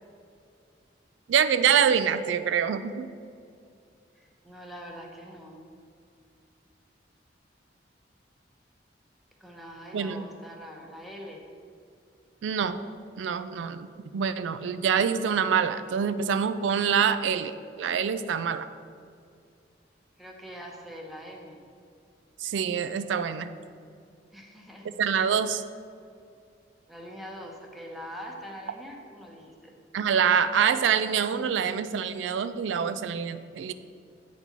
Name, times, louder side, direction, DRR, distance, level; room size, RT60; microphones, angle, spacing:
voice 1, 1.3-3.1 9.9-10.3 12.4-12.8 13.2-13.9 14.1-17.5 17.8-18.7 22.4-23.5 25.0-25.6 29.9-33.7, right 7 dB, 80° right, 12 dB, 0.3 m, -25 dB
voice 2, 4.1-5.6 9.4-11.5 20.2-21.6 24.3-24.9 26.9-29.7, equal, ahead, 0 dB, 0.8 m, -43 dB
8.1 x 4.2 x 5.9 m, 2.3 s
head